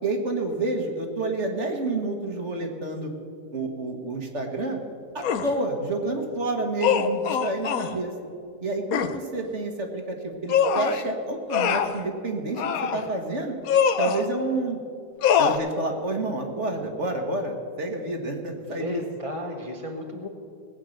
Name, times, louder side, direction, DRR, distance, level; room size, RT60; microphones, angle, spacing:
voice 1, 0.0-3.1 3.5-4.8 5.1-8.1 8.6-13.5 14.0-14.8 15.4-19.0, right 2 dB, 45° right, 3 dB, 1.5 m, -29 dB
sound 1, 5.2-5.5 6.8-7.9 8.9-9.2 10.5-11.0 11.5-12.0 12.6-13.0 13.7-14.3 15.2-15.6, left 7 dB, 65° left, 1.1 m, -23 dB
voice 2, 18.7-20.3, left 1 dB, 25° left, 1 dB, 0.9 m, -34 dB
18.5 x 8.4 x 6.4 m, 2.4 s
omnidirectional pair, 1.8 m